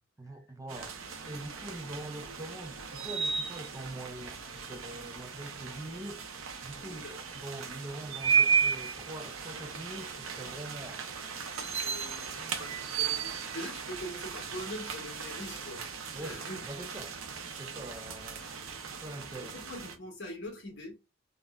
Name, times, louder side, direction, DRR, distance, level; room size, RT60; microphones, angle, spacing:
voice 1, 0.2-1.0 1.3-6.3 6.6-11.1 12.0-12.7 16.1-17.2 17.6-18.5 19.0-19.6, right 1 dB, 15° right, 0.3 m, -44 dB
sound 1, 0.7-19.9, right 6 dB, 80° right, 0.6 m, -35 dB
voice 2, 6.7-7.2 11.7-16.6 19.4-20.9, left 1 dB, 65° left, 1.3 m, -43 dB
3.5 x 2.1 x 2.3 m
head